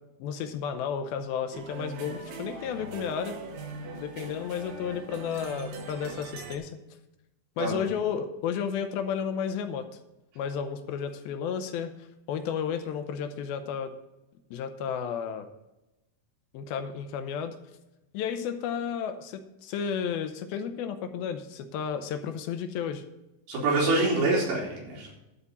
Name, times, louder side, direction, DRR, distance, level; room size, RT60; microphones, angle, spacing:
voice 1, 0.2-3.4 4.0-6.8 7.6-9.9 10.4-11.9 12.3-13.9 14.5-15.5 16.5-17.6 18.1-23.0, left 7 dB, 80° left, 8 dB, 2.5 m, -32 dB
sound 1, 1.5-6.6, right 3 dB, 60° right, 2.0 m, -41 dB
voice 2, 23.5-25.1, right 2 dB, 85° right, -4 dB, 5.1 m, -26 dB
12.0 x 4.2 x 8.2 m, 0.97 s
omnidirectional pair, 4.5 m